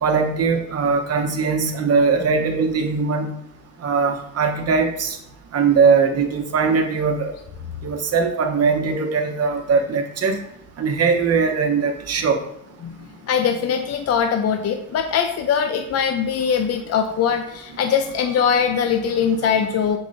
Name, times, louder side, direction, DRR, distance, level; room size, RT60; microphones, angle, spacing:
voice 1, 0.0-3.3 3.8-5.2 5.5-7.3 7.8-10.4 10.8-12.4, right 5 dB, 55° right, 4 dB, 1.1 m, -20 dB
voice 2, 13.2-20.0, left 7 dB, 55° left, 6 dB, 0.6 m, -21 dB
7.3 x 4.8 x 2.7 m, 0.80 s
cardioid pair, 90°, 30 cm